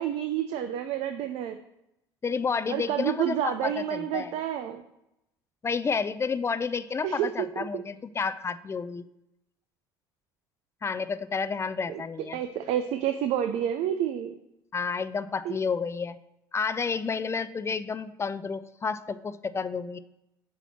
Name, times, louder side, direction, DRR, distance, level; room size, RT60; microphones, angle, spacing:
voice 1, 0.0-1.6 2.7-4.8 7.0-7.3 7.6-7.8 11.9-12.0 12.3-14.3 15.4-15.5, right 10 dB, 65° right, 8 dB, 0.4 m, -29 dB
voice 2, 2.2-4.3 5.6-9.0 10.8-12.4 14.7-16.2 16.5-20.0, left 5 dB, 25° left, 14 dB, 0.3 m, -30 dB
6.9 x 2.9 x 5.8 m, 0.86 s
hypercardioid pair, 70°, 12 cm